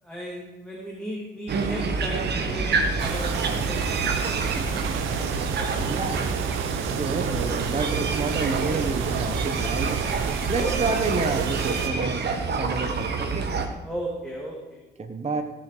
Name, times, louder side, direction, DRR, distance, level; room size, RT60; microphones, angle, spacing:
voice 1, 0.0-6.2 10.6-10.9 13.8-14.8, right 1 dB, 5° left, -3 dB, 3.1 m, -36 dB
sound 1, 1.5-13.7, right 4 dB, 55° right, 1.9 m, -28 dB
sound 2, 3.0-11.9, right 7 dB, 85° right, 1.2 m, -31 dB
voice 2, 5.8-6.2 6.9-10.0 10.5-12.2 12.5-13.5 15.0-15.4, right 3 dB, 35° right, 5 dB, 1.4 m, -29 dB
17.5 x 7.4 x 5.2 m, 1.1 s
cardioid pair, 90°, 20 cm